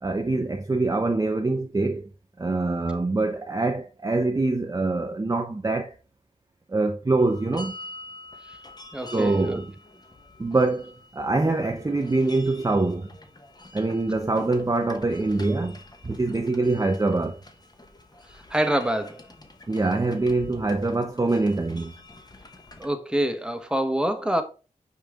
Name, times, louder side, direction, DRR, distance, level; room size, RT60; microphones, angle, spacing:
voice 1, 0.0-2.1 2.4-6.0 6.7-7.7 9.1-9.7 10.4-13.1 13.7-15.8 16.0-17.4 19.7-21.9, right 2 dB, 25° right, 0.6 m, -24 dB
sound 1, 7.2-22.9, left 2 dB, 30° left, 1.1 m, -46 dB
voice 2, 8.9-9.6 18.3-19.2 22.8-24.4, right 1 dB, 5° right, 1.0 m, -26 dB
5.3 x 4.9 x 3.6 m
cardioid pair, 50°, 15 cm